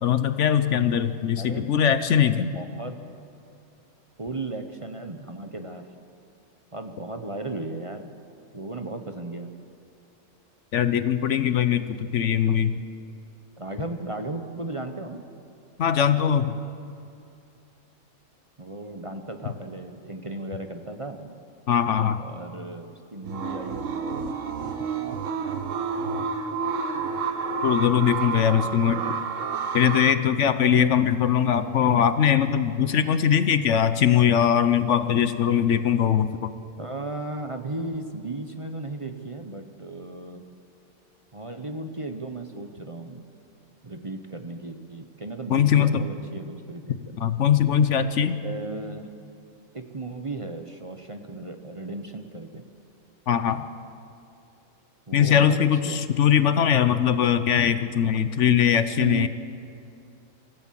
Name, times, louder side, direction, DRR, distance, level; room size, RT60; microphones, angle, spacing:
voice 1, 0.0-2.5 10.7-12.7 15.8-16.5 21.7-22.2 27.6-29.0 29.7-36.5 45.5-46.0 47.2-48.4 53.3-53.6 55.1-59.3, left 8 dB, 65° left, 11 dB, 1.1 m, -21 dB
voice 2, 1.4-1.7 2.5-3.0 4.2-5.9 6.7-8.1 8.5-9.5 13.6-15.2 18.6-21.4 22.2-24.0 36.8-40.4 41.3-43.2 43.8-47.3 48.4-49.1 49.7-52.6 55.1-56.0 59.0-59.3, right 2 dB, 25° right, 6 dB, 1.0 m, -35 dB
sound 1, 23.2-30.1, right 5 dB, 70° right, 1.4 m, -29 dB
24.5 x 15.5 x 7.5 m, 2.6 s
omnidirectional pair, 1.4 m